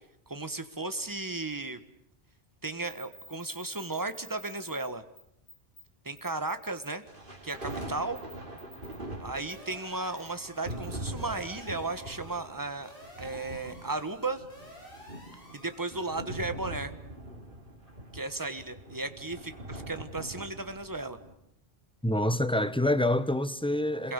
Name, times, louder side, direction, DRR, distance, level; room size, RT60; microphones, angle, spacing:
voice 1, 0.3-1.8 2.6-5.0 6.0-7.0 7.4-8.2 9.2-12.9 13.2-14.4 15.5-16.9 18.1-21.2 24.0-24.1, right 3 dB, 20° right, 1.4 m, -35 dB
sound 1, 2.8-4.9 5.2-5.3 5.5-5.8 6.2-6.9 7.5-7.7 8.1-9.0 9.5-9.6 10.2-10.3 10.7-10.8, right 1 dB, 80° left, 7.2 m, -50 dB
sound 2, 7.1-21.3, right 1 dB, 55° right, 3.9 m, -43 dB
sound 3, 9.5-16.2, equal, 60° left, 8.5 m, -52 dB
voice 2, 22.0-24.1, left 1 dB, 5° left, 0.9 m, -27 dB
27.0 x 22.0 x 8.2 m
omnidirectional pair, 1.1 m